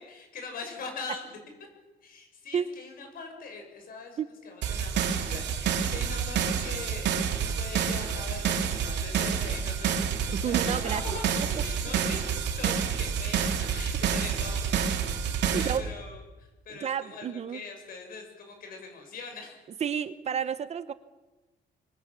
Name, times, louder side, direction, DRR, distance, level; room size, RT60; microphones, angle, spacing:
voice 1, 0.0-1.4 2.0-4.2 4.4-14.8 15.2-19.6, left 4 dB, 50° left, 4 dB, 6.6 m, -42 dB
sound 1, 4.6-15.8, right 7 dB, 75° right, 3.1 m, -28 dB
voice 2, 10.3-11.0 15.5-15.9 16.7-17.6 19.8-20.9, right 8 dB, 35° right, 13 dB, 0.8 m, -31 dB
25.5 x 23.0 x 7.5 m, 1.1 s
cardioid pair, 180°, 18 cm